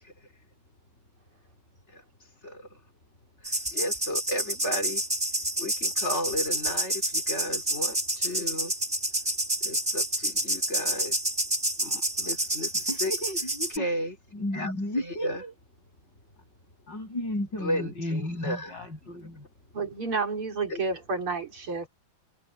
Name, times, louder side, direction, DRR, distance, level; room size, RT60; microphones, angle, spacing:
sound 1, 3.4-13.8, right 1 dB, 15° right, 4.0 m, -29 dB
voice 1, 3.7-5.0 5.6-8.7 9.6-11.1 11.8-12.7 13.0-13.1 13.7-14.2 14.5-15.4 17.6-18.8 20.7-20.8, left 1 dB, 30° left, 3.5 m, -33 dB
voice 2, 12.9-13.9 14.3-15.5 16.9-19.4, left 1 dB, 55° left, 8.8 m, -33 dB
voice 3, 19.7-21.9, right 4 dB, 85° right, 4.6 m, -30 dB
omnidirectional pair, 2.3 m